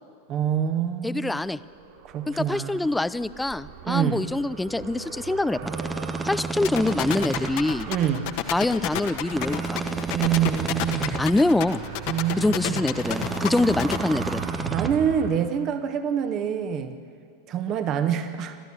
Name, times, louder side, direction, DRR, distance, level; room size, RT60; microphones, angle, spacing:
voice 1, 0.3-1.4 2.0-2.9 3.8-4.2 7.9-8.3 10.1-11.2 12.1-12.8 14.7-16.9 17.5-18.6, right 9 dB, 35° right, 9 dB, 1.3 m, -26 dB
voice 2, 1.0-1.6 2.3-5.7 6.2-7.9 8.5-9.8 11.2-11.8 12.4-14.4, left 2 dB, 5° left, 17 dB, 0.5 m, -25 dB
Car, 1.3-15.3, right 7 dB, 50° right, 3.2 m, -39 dB
sound 1, 5.6-7.5 9.3-11.2 13.0-14.9, right 3 dB, 10° right, 1.0 m, -31 dB
sound 2, 6.6-14.0, left 13 dB, 45° left, 1.3 m, -29 dB
28.5 x 13.5 x 7.7 m, 2.4 s
figure-of-eight pair, 90°, 0 cm